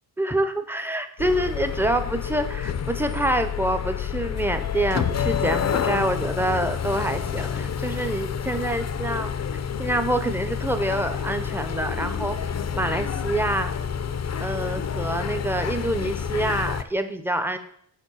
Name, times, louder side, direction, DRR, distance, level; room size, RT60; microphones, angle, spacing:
voice 1, 0.2-9.3 9.8-12.4 12.8-13.7 14.4-17.6, right 1 dB, 5° right, 8 dB, 0.7 m, -26 dB
sound 1, 1.2-16.8, left 7 dB, 40° left, 0.6 m, -28 dB
8.1 x 3.6 x 6.3 m, 0.68 s
cardioid pair, 100°, 43 cm